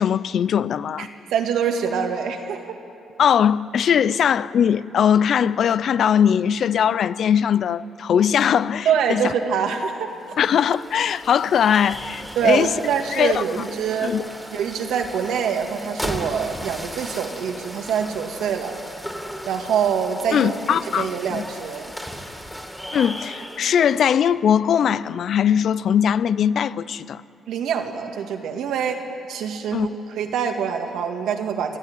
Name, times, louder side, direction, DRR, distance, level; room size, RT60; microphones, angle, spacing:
voice 1, 0.0-1.1 3.2-9.3 10.4-12.7 13.1-13.4 14.0-14.2 20.3-21.4 22.9-27.2 29.7-29.9, left 8 dB, 60° left, 0.5 m, -20 dB
voice 2, 1.0-2.8 8.9-10.1 12.4-14.2 14.5-18.8 19.5-21.9 27.5-29.0 29.3-31.8, right 7 dB, 80° right, 2.0 m, -25 dB
sound 1, 10.1-24.2, equal, ahead, 2.5 m, -36 dB
23.5 x 15.0 x 9.5 m
cardioid pair, 90°, 0 cm